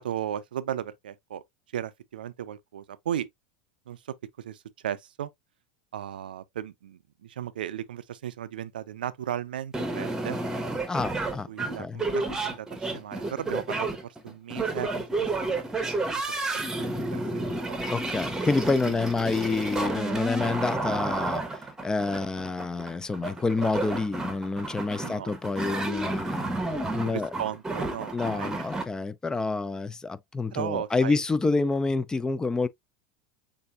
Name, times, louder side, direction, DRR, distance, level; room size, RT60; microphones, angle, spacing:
voice 1, 0.0-1.4 1.7-3.3 3.9-5.3 5.9-10.4 11.5-15.6 15.9-16.0 16.6-17.8 18.8-19.3 25.0-25.3 27.0-28.7 30.5-31.2, right 10 dB, 90° right, 0.4 m, -36 dB
sound 1, 9.7-28.8, right 2 dB, 10° right, 1.1 m, -31 dB
voice 2, 10.9-12.0 17.9-26.5 26.9-27.3 28.1-32.7, left 3 dB, 15° left, 0.4 m, -28 dB
6.8 x 2.6 x 2.4 m
hypercardioid pair, 100°, 5 cm